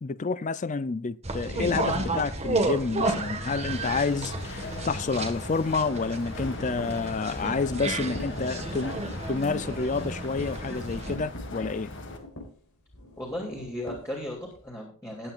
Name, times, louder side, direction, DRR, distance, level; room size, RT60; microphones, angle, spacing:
voice 1, 0.0-9.0 9.3-11.9, left 4 dB, 35° left, 0.5 m, -29 dB
sound 1, 1.2-11.2, right 2 dB, 30° right, 1.6 m, -32 dB
sound 2, 1.4-4.5 4.9-5.1 5.4-5.5 5.8-14.7, left 1 dB, 80° left, 4.7 m, -42 dB
sound 3, 3.7-12.2, left 2 dB, 55° left, 2.0 m, -40 dB
voice 2, 13.2-15.3, left 1 dB, 15° left, 2.9 m, -36 dB
19.0 x 9.0 x 2.5 m
head